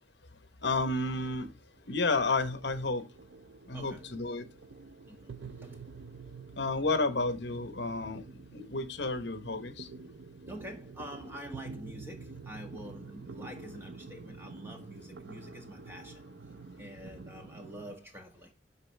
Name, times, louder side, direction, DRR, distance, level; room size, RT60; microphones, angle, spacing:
voice 1, 0.6-1.5 1.9-3.0 3.7-4.5 6.6-8.2 8.5-9.9, left 3 dB, 60° left, 1.0 m, -31 dB
sound 1, 1.3-18.0, right 4 dB, 65° right, 0.5 m, -48 dB
voice 2, 3.7-4.2 5.0-5.9 10.4-16.3 16.8-18.5, equal, 10° right, 1.6 m, -46 dB
12.0 x 4.0 x 3.3 m
head